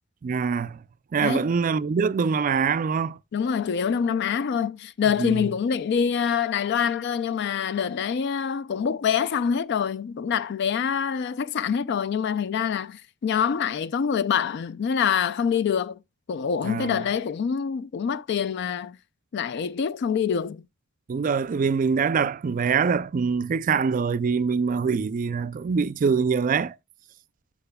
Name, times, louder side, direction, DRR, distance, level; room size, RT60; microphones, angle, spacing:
voice 1, 0.2-0.8 1.1-3.2 5.2-5.5 16.6-17.1 21.1-26.7, right 5 dB, 40° right, 0.3 m, -24 dB
voice 2, 3.3-16.0 16.3-19.0 19.3-20.6, left 7 dB, 55° left, 0.3 m, -25 dB
13.5 x 4.7 x 2.2 m
head